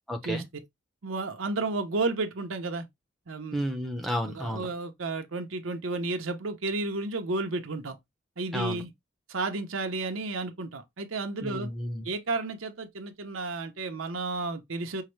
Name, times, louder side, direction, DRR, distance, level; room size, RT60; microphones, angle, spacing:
voice 1, 0.1-0.4 3.5-4.7 8.5-8.8 11.4-12.1, equal, ahead, 0.6 m, -32 dB
voice 2, 1.0-2.9 3.3-3.6 4.3-8.0 8.4-8.9 9.3-11.7 12.0-15.0, right 3 dB, 85° right, 0.8 m, -32 dB
5.6 x 2.1 x 3.1 m
head